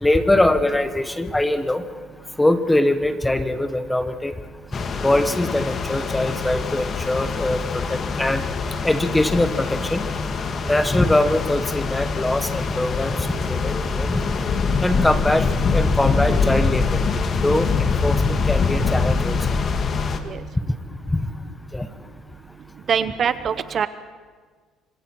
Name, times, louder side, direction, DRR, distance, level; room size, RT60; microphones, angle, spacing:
voice 1, 0.0-1.8 2.4-4.3 5.0-8.4 8.8-10.0 10.7-13.1 13.5-14.2 14.8-15.5 15.7-17.0 17.4-19.4 21.1-21.2 21.7-21.9, left 1 dB, 10° left, 10 dB, 1.3 m, -22 dB
sound 1, 4.7-20.2, left 4 dB, 40° left, 1.8 m, -24 dB
voice 2, 22.9-23.9, right 7 dB, 45° right, 13 dB, 0.8 m, -23 dB
26.5 x 25.0 x 4.6 m, 1.5 s
cardioid pair, 120°, 0 cm